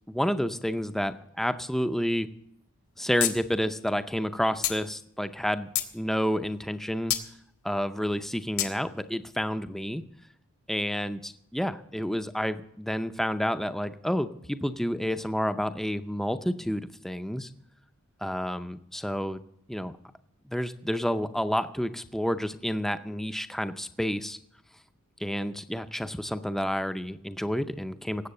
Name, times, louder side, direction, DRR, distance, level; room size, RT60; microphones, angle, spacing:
voice 1, 0.1-2.3 3.0-7.1 7.6-10.0 10.7-17.5 18.2-19.4 19.7-19.9 20.5-24.4 25.2-28.3, equal, ahead, 10 dB, 0.5 m, -30 dB
sound 1, 3.2-3.3 3.6-3.7 4.6-4.8 5.4-5.9 7.1-7.3 8.6-8.7, left 12 dB, 75° left, 1.8 m, -27 dB
18.5 x 8.0 x 6.6 m, 0.75 s
head